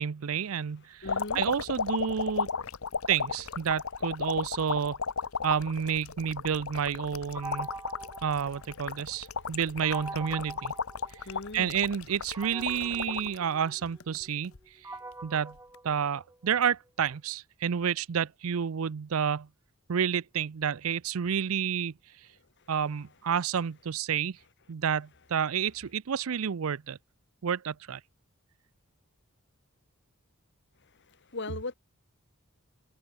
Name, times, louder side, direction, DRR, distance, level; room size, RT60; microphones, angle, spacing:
voice 1, 0.0-1.1 1.3-2.5 3.1-5.0 5.4-7.7 8.2-10.7 11.5-14.5 15.2-15.6 15.8-19.5 19.9-21.9 22.7-24.4 24.7-27.0 27.4-28.0, right 7 dB, 75° right, 0.5 m, -30 dB
sound 1, 1.0-13.4 13.9-14.6 15.6-15.8, left 5 dB, 80° left, 1.1 m, -34 dB
voice 2, 1.0-1.4 9.4-9.5 11.2-11.8 30.8-31.7, left 2 dB, 55° left, 2.1 m, -39 dB
sound 2, 7.3-9.2 9.8-11.6 12.3-16.6, right 2 dB, 15° right, 2.1 m, -44 dB
head